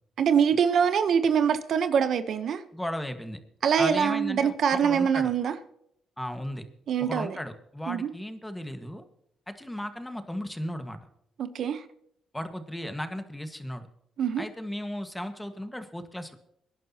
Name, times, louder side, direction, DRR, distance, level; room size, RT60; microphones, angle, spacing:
voice 1, 0.2-2.6 3.6-5.5 6.9-7.4 7.9-8.1 11.4-11.8 14.2-14.4, right 7 dB, 65° right, 11 dB, 0.9 m, -24 dB
voice 2, 2.7-3.4 3.8-5.3 6.2-6.6 7.0-9.0 9.5-11.0 12.3-13.9 14.4-16.3, equal, 5° left, 7 dB, 1.6 m, -35 dB
24.0 x 11.0 x 2.9 m, 0.74 s
cardioid pair, 90°, 0 cm